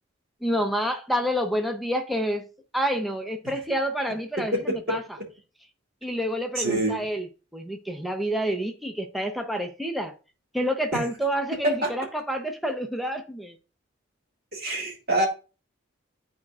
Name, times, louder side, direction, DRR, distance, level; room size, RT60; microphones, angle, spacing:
voice 1, 0.4-2.5 2.7-5.0 6.0-7.3 7.5-10.2 10.5-13.6, equal, ahead, 0.6 m, -28 dB
voice 2, 6.6-7.0 11.6-11.9 14.5-15.3, right 2 dB, 50° right, 1.9 m, -25 dB
11.5 x 4.3 x 2.4 m
head